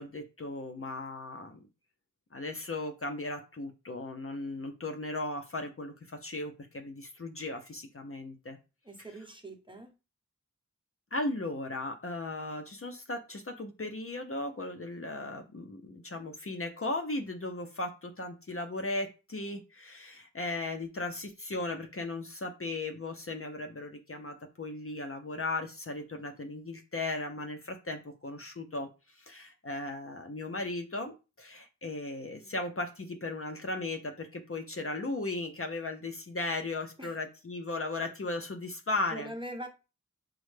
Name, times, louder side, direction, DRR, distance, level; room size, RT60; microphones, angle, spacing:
voice 1, 0.0-1.6 2.3-8.6 11.1-39.3, left 2 dB, 45° left, 4 dB, 0.6 m, -37 dB
voice 2, 8.8-9.9 32.3-32.5 37.0-37.1 39.1-39.7, right 1 dB, 15° right, 3 dB, 0.8 m, -42 dB
6.1 x 2.1 x 3.2 m, 0.30 s
wide cardioid pair, 50°, 31 cm